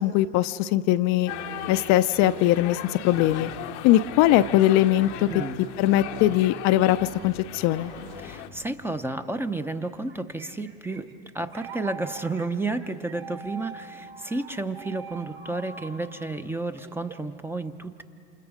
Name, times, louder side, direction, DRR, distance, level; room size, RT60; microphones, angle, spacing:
voice 1, 0.0-1.3 1.7-3.5 3.8-5.3 5.8-7.9, left 14 dB, 50° left, 11 dB, 0.6 m, -21 dB
sound 1, 1.3-8.5, left 13 dB, 70° left, 1.0 m, -38 dB
sound 2, 1.3-8.7, right 2 dB, 80° right, 5.0 m, -43 dB
voice 2, 8.2-11.1 11.3-18.0, right 2 dB, 5° right, 9 dB, 0.7 m, -31 dB
sound 3, 9.8-17.4, right 5 dB, 35° right, 1.6 m, -44 dB
28.0 x 27.5 x 5.0 m, 2.5 s
supercardioid pair, 110°, 36 cm